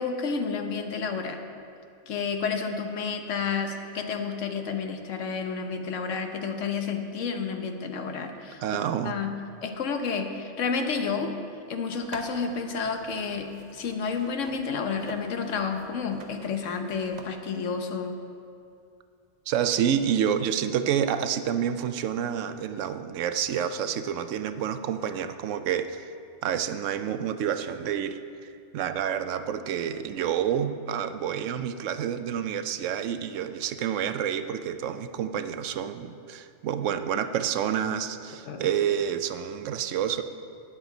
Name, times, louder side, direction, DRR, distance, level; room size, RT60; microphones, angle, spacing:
voice 1, 0.0-1.4 2.1-8.6 9.0-9.3 9.6-11.4 11.7-18.1 38.5-38.7, left 5 dB, 75° left, 5 dB, 1.2 m, -30 dB
voice 2, 8.6-9.2 19.5-26.0 26.4-40.2, right 9 dB, 80° right, 10 dB, 0.9 m, -28 dB
sound 1, 11.9-17.2, right 3 dB, 40° right, 0.9 m, -48 dB
12.5 x 9.8 x 4.0 m, 2.5 s
omnidirectional pair, 1.3 m